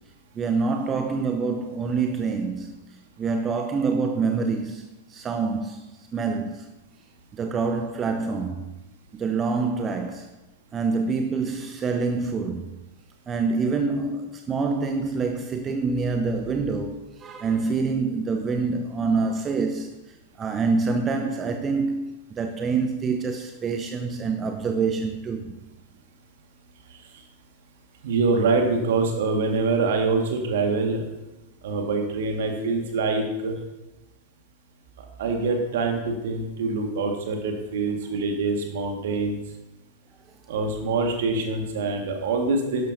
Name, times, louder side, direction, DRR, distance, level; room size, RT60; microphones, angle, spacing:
voice 1, 0.4-2.7 3.2-5.8 6.1-6.7 7.3-8.6 9.1-10.3 10.7-12.7 13.3-19.9 20.4-25.5, right 4 dB, 25° right, 0.8 m, -26 dB
voice 2, 28.0-31.0 31.6-33.5 35.2-39.4 40.5-42.9, right 3 dB, 60° right, 1.9 m, -25 dB
12.0 x 11.5 x 2.8 m
figure-of-eight pair, 90°, 0 cm